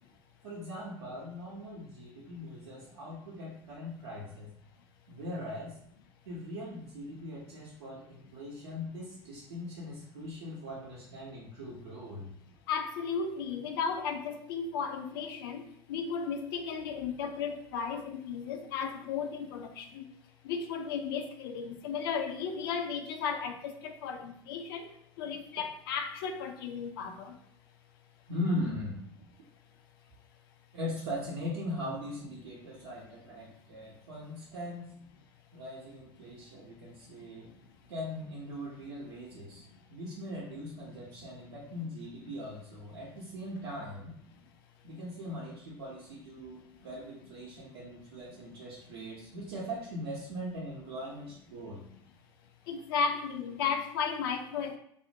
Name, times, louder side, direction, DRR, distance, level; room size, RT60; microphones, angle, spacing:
voice 1, 0.4-4.5 5.1-5.8 6.2-12.3 28.3-29.0 30.7-34.9 35.5-37.5 37.9-44.2 44.8-51.8, left 1 dB, 70° right, -5 dB, 0.6 m, -40 dB
voice 2, 12.7-20.0 20.5-24.9 25.2-27.3 52.7-54.8, left 6 dB, 65° left, 6 dB, 0.4 m, -34 dB
2.4 x 2.1 x 2.6 m, 0.71 s
figure-of-eight pair, 70°, 13 cm